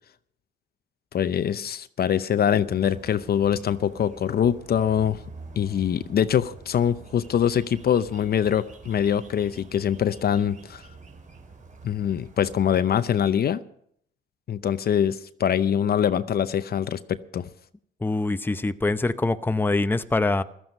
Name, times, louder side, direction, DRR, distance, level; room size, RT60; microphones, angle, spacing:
voice 1, 1.1-5.2 5.6-10.8 11.8-13.6 14.5-17.4, left 9 dB, 50° left, 13 dB, 0.7 m, -24 dB
sound 1, 2.6-12.8, right 3 dB, 40° right, 3.8 m, -46 dB
voice 2, 18.0-20.4, left 2 dB, 10° left, 11 dB, 0.7 m, -24 dB
15.5 x 13.0 x 5.4 m, 0.69 s
cardioid pair, 90°, 20 cm